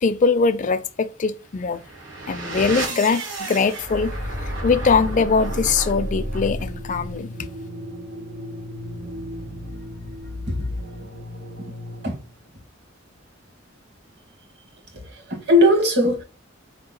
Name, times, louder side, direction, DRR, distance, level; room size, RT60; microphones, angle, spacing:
voice 1, 0.0-1.8 2.3-4.1 4.4-7.3, left 4 dB, 40° left, 0.4 m, -21 dB
sound 1, 1.6-12.3, equal, 80° right, 1.1 m, -32 dB
voice 2, 15.3-16.2, left 1 dB, 60° right, 1.2 m, -18 dB
4.4 x 2.9 x 3.8 m
head